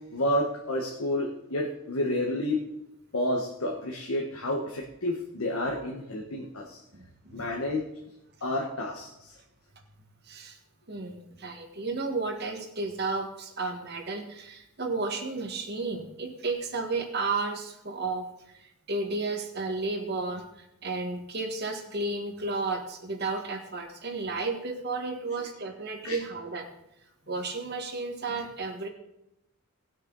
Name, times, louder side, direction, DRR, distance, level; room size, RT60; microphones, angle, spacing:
voice 1, 0.1-2.6 3.1-6.8 7.3-7.8 8.4-9.3 26.0-26.2, left 1 dB, 80° left, 0 dB, 1.3 m, -30 dB
voice 2, 6.9-7.4 10.2-10.6 10.9-18.3 18.5-20.4 20.8-26.7 27.3-28.9, right 3 dB, 50° right, 3 dB, 1.6 m, -33 dB
19.0 x 6.6 x 4.0 m, 0.89 s
head